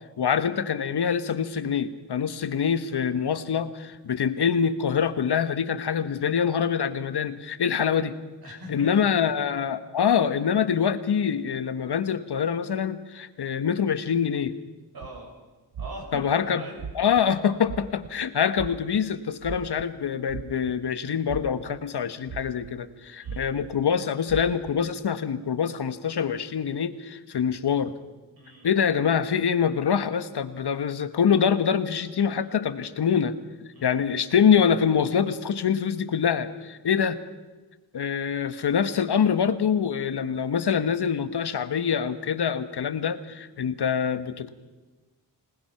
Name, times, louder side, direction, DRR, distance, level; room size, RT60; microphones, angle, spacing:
voice 1, 0.2-8.2 8.5-14.5 16.1-16.6 16.9-27.9 28.6-33.4 33.8-37.2 37.9-44.5, left 7 dB, 70° left, 11 dB, 1.3 m, -25 dB
voice 2, 8.4-9.2 14.9-15.3 15.8-17.1 23.2-23.5 28.4-28.7 33.7-34.0, right 1 dB, 60° right, 0 dB, 7.0 m, -42 dB
sound 1, 15.0-15.2 15.7-16.2 16.8-17.2 17.6-18.1 18.5-19.0 19.4-19.9 20.3-20.9 21.3-21.7 22.3-22.7 23.2-23.7 24.3-24.7, right 7 dB, 85° right, 1.1 m, -37 dB
25.0 x 19.5 x 5.8 m, 1.2 s
wide cardioid pair, 125°, 42 cm